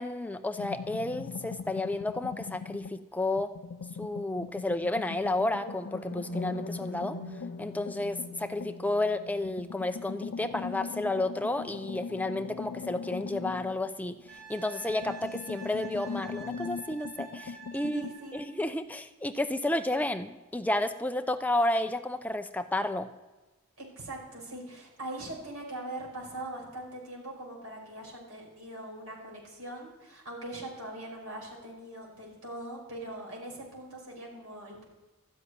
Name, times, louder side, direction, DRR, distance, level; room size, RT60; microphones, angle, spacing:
voice 1, 0.0-3.5 4.0-7.2 7.6-14.2 14.5-18.0 18.3-23.1, left 2 dB, 5° left, 9 dB, 0.5 m, -31 dB
Underwater Crab-like Monster Growl, 0.6-3.0 3.4-9.0 9.4-14.5 14.8-18.2, left 6 dB, 65° left, 0.4 m, -41 dB
sound 1, 5.5-13.5, left 2 dB, 50° left, 1.2 m, -43 dB
Wind instrument woodwind instrument, 14.3-18.5 21.2-21.3, right 6 dB, 50° right, 6.6 m, -48 dB
voice 2, 17.9-18.4 23.8-34.8, right 1 dB, 85° right, -2 dB, 5.1 m, -41 dB
13.0 x 8.0 x 9.6 m, 1.1 s
head